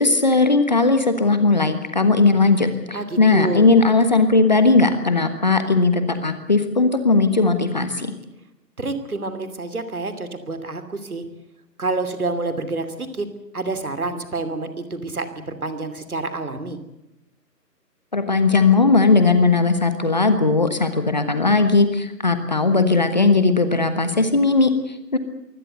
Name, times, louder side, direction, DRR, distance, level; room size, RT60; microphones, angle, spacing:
voice 1, 0.0-8.1 18.1-24.7 25.1-25.2, left 3 dB, 25° left, 9 dB, 1.2 m, -18 dB
voice 2, 2.9-3.6 8.8-11.2 11.8-13.3 13.5-16.8, right 3 dB, 60° right, 9 dB, 2.9 m, -28 dB
23.5 x 17.0 x 7.9 m, 0.89 s
figure-of-eight pair, 155°, 49 cm